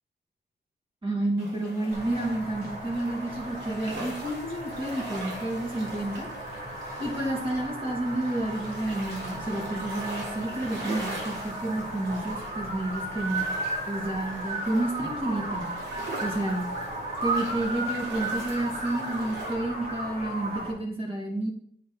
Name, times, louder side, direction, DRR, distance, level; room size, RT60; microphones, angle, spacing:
voice 1, 1.0-6.3 7.0-13.4 13.9-15.7 16.2-16.7 17.2-21.5, right 1 dB, 25° right, -2 dB, 2.5 m, -30 dB
sound 1, 1.4-19.5, right 2 dB, 80° right, 3.7 m, -42 dB
sound 2, 1.9-20.7, right 2 dB, 55° right, 3.6 m, -35 dB
8.3 x 6.8 x 3.2 m, 0.66 s
wide cardioid pair, 120°, 19 cm